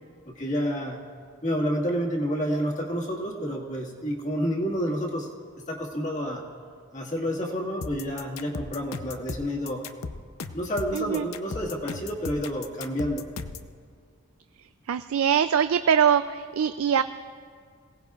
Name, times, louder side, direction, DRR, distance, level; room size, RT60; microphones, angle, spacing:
voice 1, 0.3-1.0 1.4-5.3 5.6-6.4 6.9-9.8 10.5-13.3, equal, 35° left, -1 dB, 1.7 m, -29 dB
sound 1, 7.8-13.7, left 4 dB, 75° left, 0.6 m, -36 dB
voice 2, 10.9-11.3 14.9-17.0, right 8 dB, 80° right, 11 dB, 0.3 m, -22 dB
27.0 x 17.5 x 2.4 m, 2.1 s
head